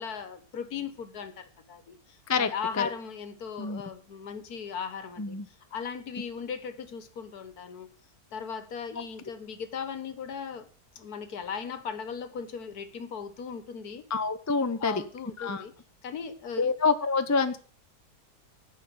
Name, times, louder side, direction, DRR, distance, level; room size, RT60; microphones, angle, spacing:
voice 1, 0.0-7.9 8.3-10.7 10.9-14.0 14.8-15.7 16.0-16.7, left 6 dB, 65° left, 1.7 m, -37 dB
voice 2, 2.3-2.8 3.6-3.8 5.2-5.5 14.1-15.0 15.4-15.6 16.6-17.6, left 4 dB, 25° left, 0.3 m, -27 dB
10.0 x 6.5 x 7.8 m
omnidirectional pair, 1.8 m